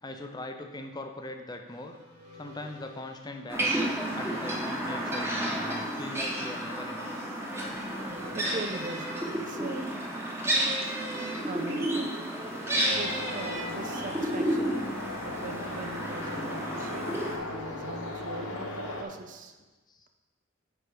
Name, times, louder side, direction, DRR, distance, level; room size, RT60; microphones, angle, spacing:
voice 1, 0.0-2.0 2.3-5.5 6.0-7.1 19.9-20.1, left 1 dB, 20° left, 4 dB, 0.6 m, -41 dB
sound 1, 1.7-17.3, equal, 75° right, 2.6 m, -49 dB
sound 2, 3.5-17.4, right 1 dB, 10° right, 1.1 m, -31 dB
voice 2, 8.3-9.9 11.4-12.2 12.8-14.7 15.2-19.6, right 3 dB, 35° right, 7 dB, 0.4 m, -41 dB
sound 3, 12.9-19.0, left 2 dB, 80° left, 1.3 m, -38 dB
9.9 x 4.6 x 5.1 m, 1.2 s
head